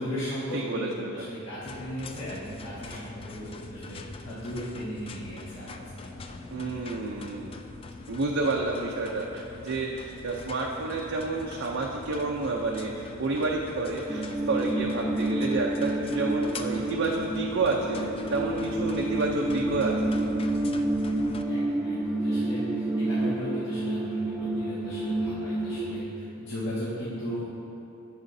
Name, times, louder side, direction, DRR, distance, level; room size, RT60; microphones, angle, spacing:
voice 1, 0.0-4.0 4.2-6.8 21.5-24.1 24.4-27.5, equal, 60° left, -11 dB, 1.5 m, -37 dB
voice 2, 0.5-1.1 6.5-7.6 8.1-18.0 18.3-20.0, right 3 dB, 60° right, -1 dB, 0.5 m, -30 dB
sound 1, 1.6-21.4, left 3 dB, 25° left, 0.3 m, -43 dB
sound 2, 14.1-26.0, right 1 dB, ahead, 0.7 m, -29 dB
11.0 x 7.3 x 2.7 m, 2.9 s
head